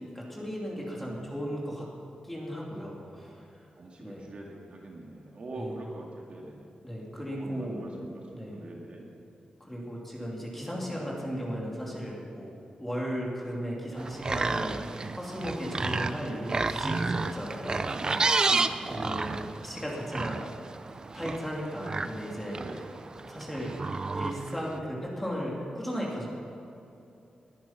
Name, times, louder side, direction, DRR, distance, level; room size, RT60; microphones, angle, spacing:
voice 1, 0.0-1.9 2.2-3.5 4.0-4.3 5.6-5.8 6.8-7.8 8.3-8.6 9.6-14.8 15.1-17.9 18.9-20.4 21.1-22.6 23.3-23.7 24.1-26.3, equal, 5° left, -3 dB, 2.9 m, -36 dB
voice 2, 0.7-1.3 3.1-3.4 3.8-6.7 7.1-9.1 10.7-11.1 17.9-19.4 22.6-22.8, right 2 dB, 50° right, -1 dB, 2.2 m, -44 dB
sound 1, 14.0-24.8, right 3 dB, 30° right, 0.5 m, -31 dB
20.5 x 10.5 x 5.9 m, 2.8 s
wide cardioid pair, 175°, 2 cm